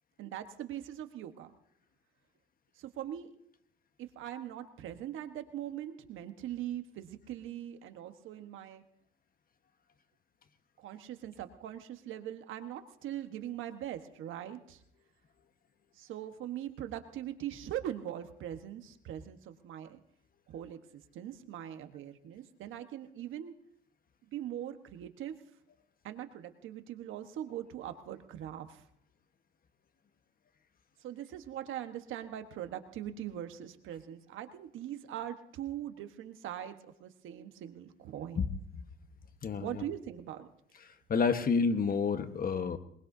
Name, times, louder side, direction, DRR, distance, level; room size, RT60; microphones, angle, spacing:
voice 1, 0.2-1.5 2.8-3.3 4.0-8.8 10.8-14.8 15.9-20.0 20.5-20.8 21.1-23.5 24.3-25.3 26.0-28.8 31.0-38.4 39.6-40.5, right 11 dB, 85° right, 8 dB, 1.3 m, -41 dB
voice 2, 39.4-39.8 40.8-42.8, left 5 dB, 45° left, 9 dB, 1.3 m, -30 dB
23.0 x 21.5 x 2.8 m, 0.70 s
cardioid pair, 90°, 20 cm